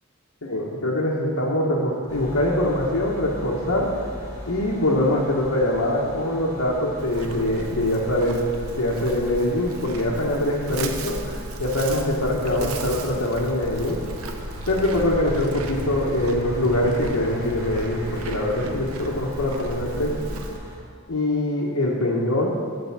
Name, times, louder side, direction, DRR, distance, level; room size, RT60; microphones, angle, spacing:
voice 1, 0.4-3.9 4.5-8.4 8.8-14.0 14.7-20.3 21.1-22.5, left 1 dB, 85° left, -6 dB, 1.1 m, -23 dB
sound 1, 2.1-20.8, equal, 15° right, 2.0 m, -39 dB
Livestock farm animals working animals, 7.0-20.6, right 2 dB, 85° right, 0.7 m, -35 dB
7.8 x 5.2 x 7.2 m, 2.1 s
head